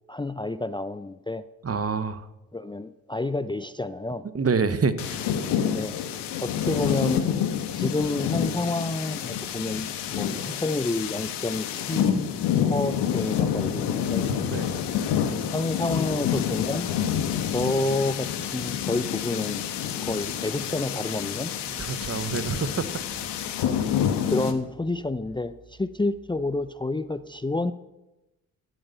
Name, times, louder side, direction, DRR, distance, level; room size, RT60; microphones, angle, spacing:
voice 1, 0.1-1.4 2.5-4.2 5.7-5.9 6.4-7.3 7.7-12.3 12.6-14.3 15.5-16.9 17.5-19.6 20.0-21.5 23.6-23.8 24.3-27.7, left 2 dB, 10° left, 0.6 m, -29 dB
voice 2, 1.6-2.3 4.3-5.3 14.5-14.7 21.7-23.5, right 5 dB, 35° right, 1.2 m, -28 dB
sound 1, 5.0-24.5, left 8 dB, 80° left, 1.4 m, -28 dB
14.0 x 8.9 x 6.7 m
hypercardioid pair, 45°, 41 cm